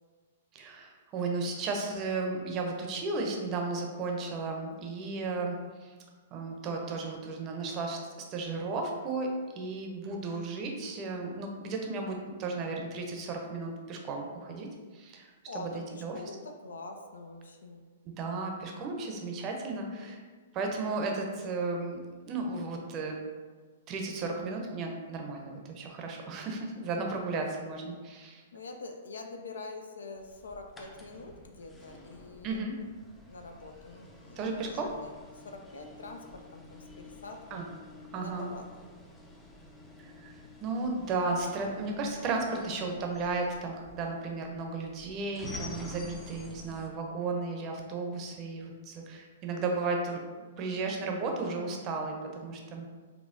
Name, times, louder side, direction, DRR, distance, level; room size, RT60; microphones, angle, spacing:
voice 1, 0.5-5.6 5.8-5.9 6.3-8.0 8.3-14.7 14.9-15.7 16.0-16.2 18.1-20.2 20.5-23.2 23.9-28.4 32.4-32.8 34.4-34.9 37.5-37.7 38.1-38.5 40.0-40.3 40.6-50.2 50.6-52.9, right 3 dB, 35° right, 1 dB, 0.6 m, -34 dB
voice 2, 5.2-5.5 15.5-17.9 19.7-20.2 28.5-32.6 33.2-37.7 38.1-38.8 51.7-52.0, left 3 dB, 85° left, 5 dB, 0.3 m, -45 dB
sound 1, 30.2-46.9, left 2 dB, 10° left, 0.5 m, -49 dB
4.1 x 2.2 x 2.6 m, 1.4 s
hypercardioid pair, 125°, 0 cm